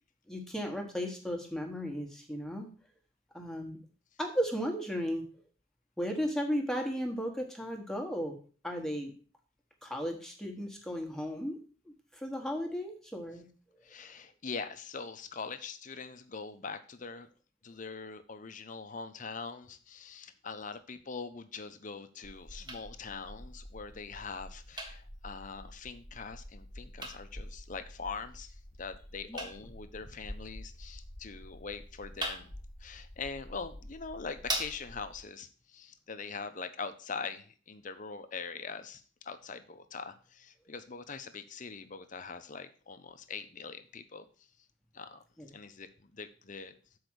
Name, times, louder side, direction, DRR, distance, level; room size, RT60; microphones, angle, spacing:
voice 1, 0.3-2.7 3.3-3.8 4.2-5.3 6.0-8.4 8.6-9.1 9.8-11.6 11.8-13.5 29.3-29.4 45.4-45.5, equal, ahead, 2 dB, 1.1 m, -35 dB
voice 2, 13.8-17.3 17.6-44.3 44.9-47.0, left 5 dB, 40° left, 10 dB, 0.6 m, -43 dB
sound 1, 22.2-35.2, right 1 dB, 20° right, 1.2 m, -44 dB
6.8 x 4.8 x 6.1 m, 0.39 s
head